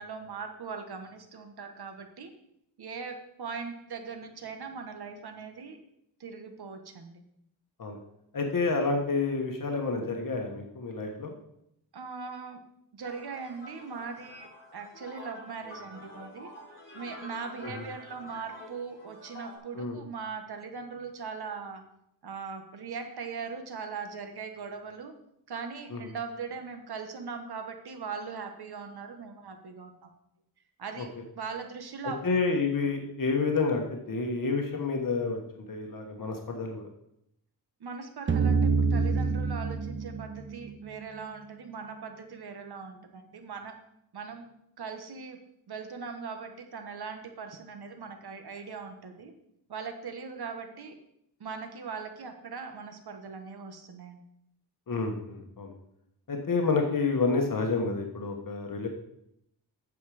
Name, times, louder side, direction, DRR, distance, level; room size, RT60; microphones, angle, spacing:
voice 1, 0.0-2.3 2.8-5.8 6.2-7.2 11.9-12.6 12.9-16.5 16.9-21.8 22.2-25.1 25.5-30.1 30.8-32.2 37.8-43.7 44.1-44.5 44.8-45.4 45.7-49.3 49.7-51.0 51.4-54.2, right 5 dB, 65° right, 6 dB, 1.3 m, -40 dB
voice 2, 8.3-11.3 17.6-17.7 19.7-20.0 25.9-26.0 31.0-31.1 32.2-36.9 54.9-55.7 56.3-58.9, left 4 dB, 50° left, 2 dB, 1.4 m, -29 dB
sound 1, 13.0-19.6, left 1 dB, 30° left, 4.0 m, -48 dB
sound 2, 38.3-41.2, right 4 dB, 30° right, 0.7 m, -27 dB
8.5 x 7.2 x 4.9 m, 0.78 s
wide cardioid pair, 95°, 41 cm